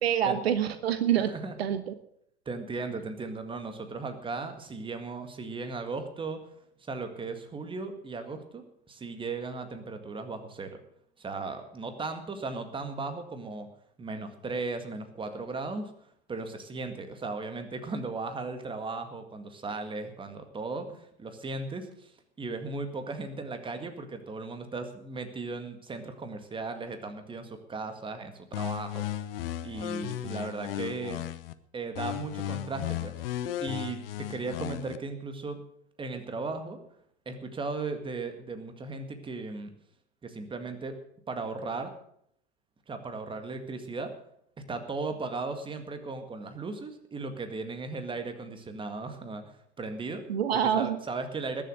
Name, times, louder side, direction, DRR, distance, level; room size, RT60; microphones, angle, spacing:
voice 1, 0.0-1.3 1.6-1.9 50.3-51.0, right 9 dB, 65° right, 11 dB, 1.1 m, -26 dB
voice 2, 2.5-6.5 6.8-10.8 11.2-13.7 14.0-15.9 16.3-31.2 31.7-35.6 36.0-36.8 37.3-39.7 40.2-41.0 41.3-41.9 42.9-44.1 44.6-50.3 50.5-51.6, right 3 dB, 15° right, 8 dB, 1.9 m, -37 dB
sound 1, 28.5-31.5 31.9-35.0, left 13 dB, 55° left, 0.9 m, -35 dB
20.5 x 7.6 x 6.5 m, 0.69 s
figure-of-eight pair, 90°, 34 cm